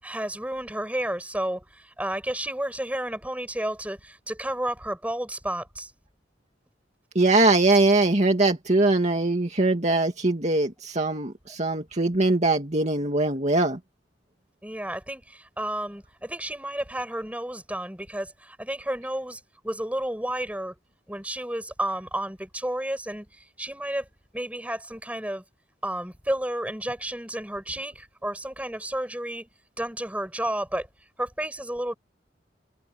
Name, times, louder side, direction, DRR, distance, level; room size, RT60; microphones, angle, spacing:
voice 1, 0.0-5.9 14.6-20.7 21.1-24.1 24.3-25.4 25.8-29.5 29.8-30.9 31.2-31.9, right 1 dB, 10° right, 7.9 m, -31 dB
voice 2, 7.2-13.8, right 2 dB, 40° right, 2.4 m, -22 dB
head